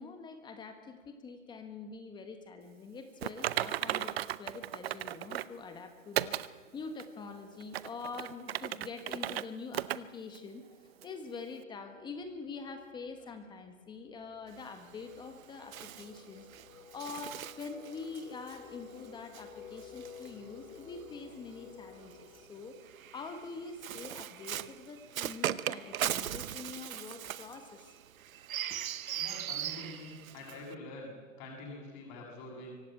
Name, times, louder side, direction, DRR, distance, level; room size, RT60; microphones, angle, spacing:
voice 1, 0.0-16.5 16.9-22.8 23.1-27.9 28.7-28.8, left 4 dB, 10° left, 7 dB, 1.5 m, -45 dB
Typing, 3.2-5.6 6.2-6.5 7.0-7.1 7.6-9.4 9.7-10.0 10.3-10.4 11.0-11.1, right 12 dB, 45° right, 0.8 m, -35 dB
sound 1, 12.2-12.4 12.7-24.3, left 7 dB, 65° left, 3.2 m, -53 dB
Bird, 14.5-21.0 21.9-30.7, right 11 dB, 75° right, 0.9 m, -40 dB
voice 2, 29.1-32.8, left 2 dB, 30° left, 0 dB, 7.0 m, -46 dB
24.5 x 16.5 x 8.9 m, 1.5 s
hypercardioid pair, 155°, 41 cm